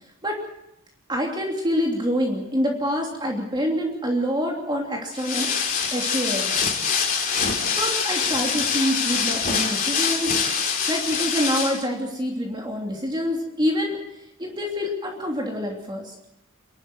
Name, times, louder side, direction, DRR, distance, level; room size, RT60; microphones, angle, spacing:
voice 1, 1.1-6.5 7.6-10.3 10.9-16.1, equal, 20° right, 0 dB, 3.1 m, -26 dB
sound 1, 5.1-11.8, left 6 dB, 40° left, 3.1 m, -24 dB
27.5 x 12.0 x 7.9 m, 0.87 s
head